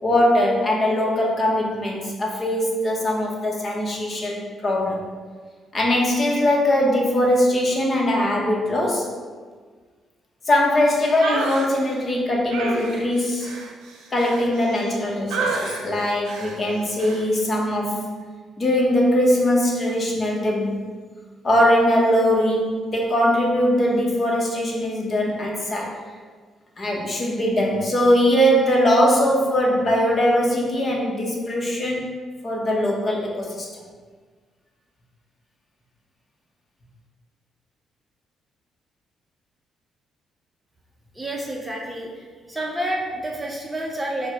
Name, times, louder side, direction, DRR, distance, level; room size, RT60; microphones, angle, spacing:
voice 1, 0.0-5.0 5.7-9.1 10.5-13.5 14.1-18.0 18.6-20.8 21.4-25.9 26.8-32.1 32.4-33.7, equal, 35° left, -1 dB, 0.9 m, -21 dB
sound 1, 11.2-11.7 12.5-14.9 15.3-15.8 16.3-16.6 17.0-17.2, right 3 dB, 85° right, 0.6 m, -29 dB
voice 2, 41.1-42.2 42.5-44.3, right 1 dB, 15° right, -2 dB, 0.7 m, -29 dB
4.6 x 2.2 x 4.8 m, 1.5 s
cardioid pair, 90°, 0 cm